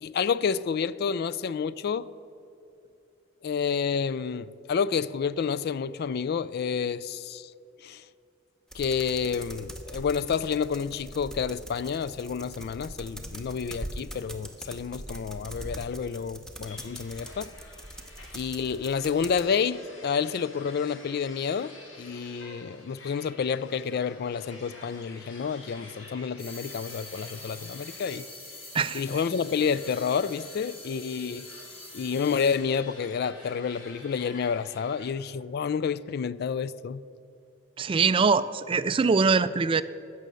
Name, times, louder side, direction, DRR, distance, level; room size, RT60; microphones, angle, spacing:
voice 1, 0.0-2.1 3.4-7.5 7.8-8.0 8.7-17.5 18.3-28.2 28.9-31.5 31.9-37.0, left 6 dB, 55° left, 0.3 m, -29 dB
sound 1, 8.7-19.5, equal, 5° left, 0.9 m, -42 dB
sound 2, 16.7-35.1, left 2 dB, 70° left, 2.0 m, -50 dB
sound 3, 26.4-32.6, left 2 dB, 30° left, 2.4 m, -45 dB
voice 2, 37.8-39.8, right 5 dB, 25° right, 0.3 m, -23 dB
15.5 x 6.4 x 6.8 m
head